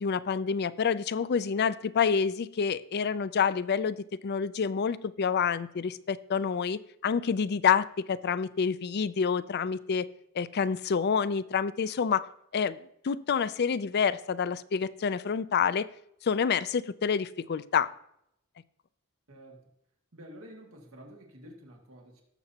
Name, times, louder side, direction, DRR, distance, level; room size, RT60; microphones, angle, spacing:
voice 1, 0.0-4.0 4.2-10.1 10.3-12.2 12.5-12.8 13.0-15.9 16.2-17.9, left 6 dB, 50° left, 16 dB, 0.4 m, -28 dB
voice 2, 19.3-19.6 20.1-22.2, equal, 85° right, 1 dB, 2.0 m, -49 dB
18.0 x 7.0 x 2.9 m, 0.76 s
head